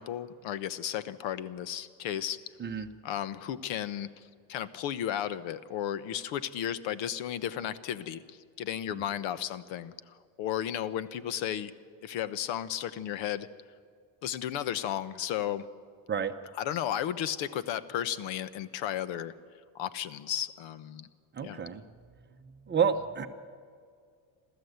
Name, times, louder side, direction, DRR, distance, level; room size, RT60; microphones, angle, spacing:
voice 1, 0.0-2.4 3.0-11.7 12.0-13.5 14.2-15.7 16.6-19.3 19.7-21.1 21.4-21.6, left 10 dB, 80° left, 15 dB, 1.0 m, -34 dB
voice 2, 21.3-21.8 22.7-23.3, right 7 dB, 25° right, 8 dB, 0.8 m, -29 dB
28.5 x 13.5 x 8.0 m, 2.1 s
cardioid pair, 155°, 46 cm